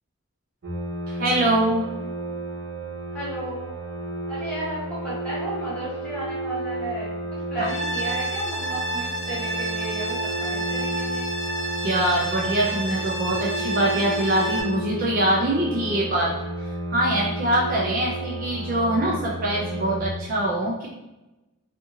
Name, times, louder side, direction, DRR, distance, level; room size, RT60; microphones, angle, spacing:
sound 1, 0.6-20.0, right 1 dB, 75° right, 0.8 m, -32 dB
voice 1, 1.1-1.8 11.8-16.3 16.9-20.9, right 1 dB, 40° right, -4 dB, 0.4 m, -23 dB
voice 2, 3.1-3.7 4.3-7.1 7.5-11.3, right 1 dB, 5° left, -10 dB, 1.1 m, -33 dB
sound 2, 7.6-14.6, right 2 dB, 55° left, 0.5 m, -30 dB
2.6 x 2.5 x 2.7 m, 1.0 s
head